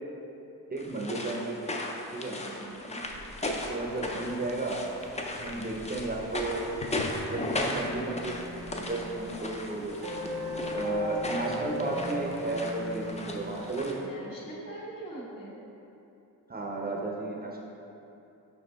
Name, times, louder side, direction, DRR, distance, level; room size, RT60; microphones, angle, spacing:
voice 1, 0.7-1.6 2.1-2.4 3.4-4.8 5.3-6.7 7.3-9.9 10.7-14.0 16.5-17.6, right 2 dB, 25° right, -2 dB, 0.6 m, -33 dB
sound 1, 0.8-14.0, left 2 dB, 20° left, 0.4 m, -37 dB
voice 2, 2.2-3.0 5.5-5.8 14.0-15.6, right 1 dB, 65° left, -6 dB, 1.5 m, -43 dB
Rain, 3.0-13.8, left 1 dB, 80° left, 1.0 m, -50 dB
sound 2, 7.6-13.9, left 1 dB, 85° right, 1.2 m, -38 dB
5.4 x 4.8 x 4.0 m, 2.8 s
wide cardioid pair, 140°, 36 cm